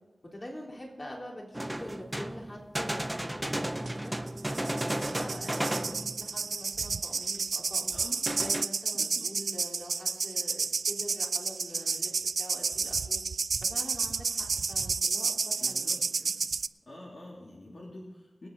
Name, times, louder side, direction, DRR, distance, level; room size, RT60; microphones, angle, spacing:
voice 1, 0.3-4.2 4.5-8.0 8.3-13.2 13.6-15.9, equal, 30° left, -2 dB, 3.7 m, -45 dB
sound 1, 0.8-1.8 2.7-2.8 3.8-4.2 5.0-5.6 6.4-6.6, right 3 dB, 65° right, 1.4 m, -55 dB
sound 2, 1.5-6.4 6.8-6.9 7.4-7.5 8.3-8.7, right 1 dB, 10° right, 0.5 m, -33 dB
sound 3, 4.3-16.7, right 4 dB, 90° right, 0.3 m, -31 dB
voice 2, 7.9-8.2 8.9-9.3 15.6-16.4 16.9-18.5, left 1 dB, 55° left, -4 dB, 2.9 m, -47 dB
24.5 x 8.6 x 4.0 m, 1.2 s
wide cardioid pair, 100°, 0 cm